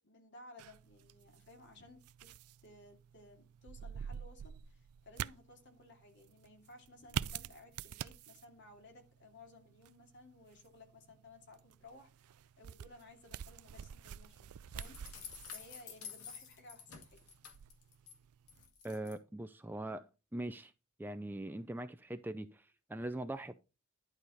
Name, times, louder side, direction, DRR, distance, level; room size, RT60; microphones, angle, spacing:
voice 1, 0.0-2.3 2.6-12.1 12.6-15.0 15.5-17.3, left 2 dB, 50° left, 2.7 m, -58 dB
sound 1, 0.6-18.7, right 8 dB, 85° right, 0.4 m, -48 dB
sound 2, 14.8-18.1 18.5-19.2, left 7 dB, 90° left, 2.1 m, -50 dB
voice 2, 18.8-20.1 20.3-20.7 21.0-23.5, right 1 dB, 10° right, 0.4 m, -41 dB
11.0 x 4.9 x 4.1 m
head